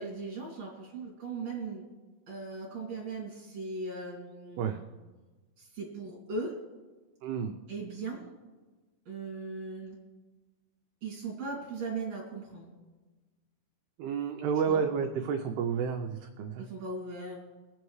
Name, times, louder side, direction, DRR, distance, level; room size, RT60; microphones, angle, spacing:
voice 1, 0.0-1.8 2.3-4.8 5.6-6.5 7.7-8.3 9.0-10.0 11.0-12.7 14.6-14.8 16.6-17.4, right 3 dB, 40° right, -3 dB, 3.1 m, -38 dB
voice 2, 7.2-7.6 14.0-16.6, right 6 dB, 85° right, 4 dB, 2.2 m, -30 dB
23.5 x 8.6 x 3.2 m, 1.3 s
omnidirectional pair, 5.3 m